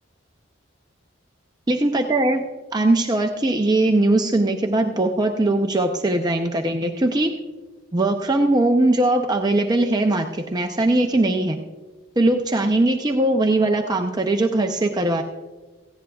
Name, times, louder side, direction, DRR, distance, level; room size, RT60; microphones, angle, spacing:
voice 1, 1.7-2.5 2.7-7.3 7.9-11.6 12.2-15.2, right 2 dB, 20° right, 3 dB, 0.6 m, -20 dB
18.0 x 15.0 x 2.3 m, 1.3 s
head